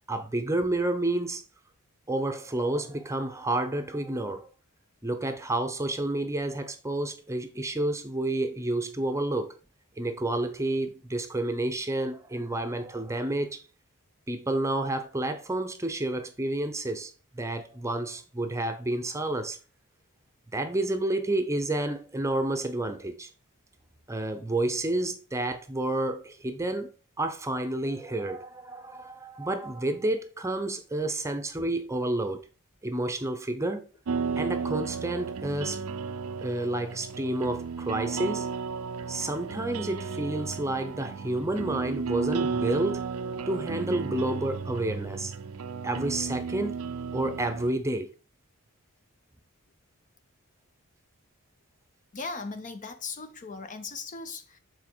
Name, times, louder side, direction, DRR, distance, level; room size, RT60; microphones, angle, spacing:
voice 1, 0.1-1.4 2.1-4.5 5.0-9.6 10.0-13.6 14.3-19.6 20.5-23.3 24.1-26.9 27.2-32.4 32.8-33.8 34.4-35.8 36.4-38.5 39.1-45.3 45.8-46.8 47.1-48.1, right 2 dB, 15° right, 0.7 m, -30 dB
sound 1, 34.1-47.7, right 5 dB, 75° right, 0.5 m, -34 dB
voice 2, 52.1-54.6, left 4 dB, 35° left, 0.6 m, -38 dB
7.3 x 4.0 x 4.5 m
head